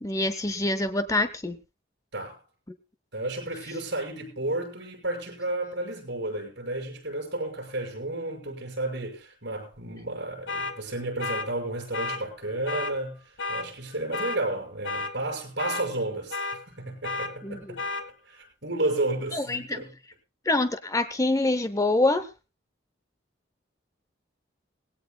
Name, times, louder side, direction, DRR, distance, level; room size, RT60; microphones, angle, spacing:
voice 1, 0.0-1.6 17.4-17.8 19.3-19.8 20.5-22.3, left 2 dB, 15° left, 0.8 m, -25 dB
voice 2, 3.1-13.2 13.5-17.8 18.3-20.0, right 2 dB, 60° right, 6.2 m, -32 dB
sound 1, 10.5-10.7 11.2-11.5 11.9-12.2 12.7-12.9 13.4-13.7 14.1-14.4 14.8-15.1 15.6-15.8 16.3-16.6 17.0-17.3 17.8-18.0, left 3 dB, 75° left, 1.5 m, -31 dB
19.0 x 17.0 x 2.3 m
head